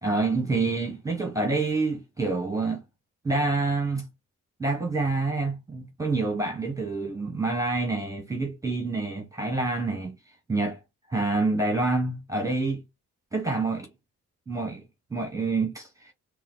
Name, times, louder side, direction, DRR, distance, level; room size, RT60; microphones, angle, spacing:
voice 1, 0.0-2.8 3.2-4.1 4.6-10.1 10.5-10.8 11.1-12.8 13.3-13.9 14.5-14.8 15.1-16.1, right 3 dB, 10° right, 1.1 m, -27 dB
3.7 x 2.4 x 3.8 m
cardioid pair, 90°, 30 cm